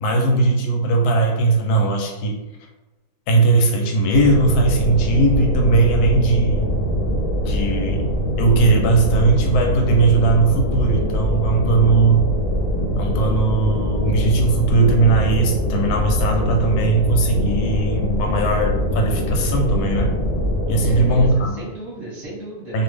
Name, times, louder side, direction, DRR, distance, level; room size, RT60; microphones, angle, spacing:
voice 1, 0.0-2.4 3.3-6.7 7.4-8.1 8.4-12.2 13.0-20.2 20.7-21.6 22.7-22.8, right 3 dB, 85° left, 2 dB, 1.1 m, -18 dB
sound 1, 4.1-21.4, equal, 70° left, 0.5 m, -22 dB
voice 2, 20.7-22.8, right 1 dB, 15° right, -8 dB, 1.1 m, -35 dB
2.6 x 2.4 x 3.3 m, 1.1 s
omnidirectional pair, 1.6 m